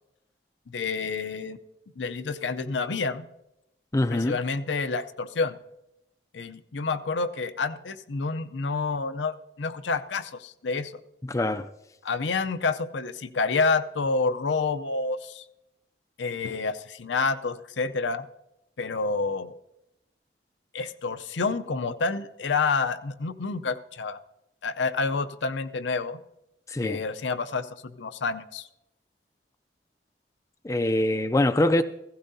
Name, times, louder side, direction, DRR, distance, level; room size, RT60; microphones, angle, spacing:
voice 1, 0.7-1.6 2.0-3.3 4.1-5.6 6.3-10.9 12.0-15.4 16.2-18.3 18.8-19.6 20.7-24.2 24.6-26.2 26.8-27.7 28.0-28.7, left 4 dB, 85° left, 0.6 m, -28 dB
voice 2, 3.9-4.4 11.3-11.7 26.7-27.0 30.6-31.8, left 1 dB, 15° left, 0.3 m, -24 dB
16.0 x 15.0 x 2.7 m
head